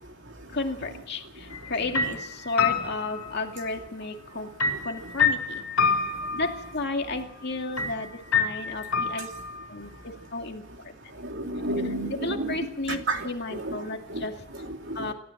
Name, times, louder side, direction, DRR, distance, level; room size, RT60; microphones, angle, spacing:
voice 1, 0.5-4.5 4.8-6.0 6.3-9.3 9.7-10.6 12.1-14.4 14.9-15.1, left 3 dB, 45° left, 3 dB, 2.3 m, -33 dB
sound 1, 1.5-1.7 1.9-3.8 4.6-6.6 7.8-7.9 8.3-9.6, left 5 dB, 70° left, 4.4 m, -27 dB
voice 2, 11.3-12.6 13.1-13.8 14.1-14.2 14.6-15.1, right 2 dB, 55° right, 3 dB, 2.9 m, -31 dB
27.5 x 13.5 x 7.9 m, 0.74 s
head